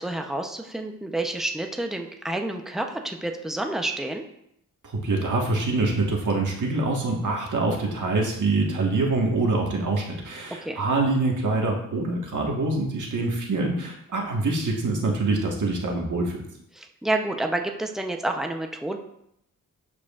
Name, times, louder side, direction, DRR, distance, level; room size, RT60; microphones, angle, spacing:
voice 1, 0.0-4.2 10.6-10.8 16.8-19.0, right 2 dB, ahead, 4 dB, 0.7 m, -29 dB
voice 2, 4.8-16.4, right 3 dB, 60° right, 0 dB, 1.6 m, -25 dB
12.0 x 4.8 x 2.4 m, 0.76 s
wide cardioid pair, 95°, 34 cm